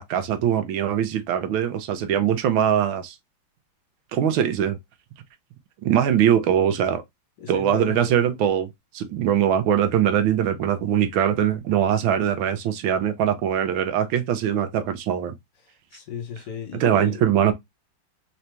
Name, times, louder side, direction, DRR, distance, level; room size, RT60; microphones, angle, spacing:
voice 1, 0.0-3.2 4.1-4.8 5.8-7.0 7.5-8.7 8.9-15.3 16.8-17.5, right 9 dB, 75° right, 1.4 m, -22 dB
voice 2, 7.4-8.2 15.6-17.2, left 5 dB, 60° left, 1.6 m, -34 dB
3.9 x 2.8 x 3.3 m
omnidirectional pair, 2.3 m